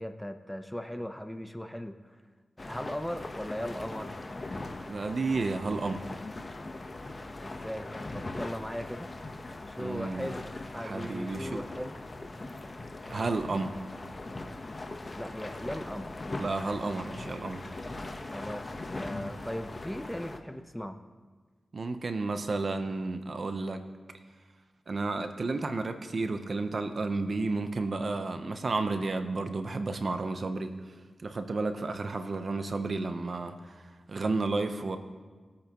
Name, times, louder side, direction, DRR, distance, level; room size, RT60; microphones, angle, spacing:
voice 1, 0.0-2.2 2.6-4.1 7.4-7.9 8.1-9.1 9.7-12.0 15.1-16.1 18.3-21.0, equal, 5° left, 7 dB, 0.9 m, -38 dB
sound 1, 2.6-20.4, left 2 dB, 40° left, 1.1 m, -40 dB
voice 2, 4.9-6.1 9.8-10.3 10.8-11.6 13.1-13.8 16.4-17.6 21.7-23.8 24.9-30.9 31.2-33.8 34.1-35.0, right 3 dB, 60° right, 8 dB, 0.9 m, -32 dB
21.5 x 8.5 x 3.1 m, 1.4 s
cardioid pair, 55°, 0 cm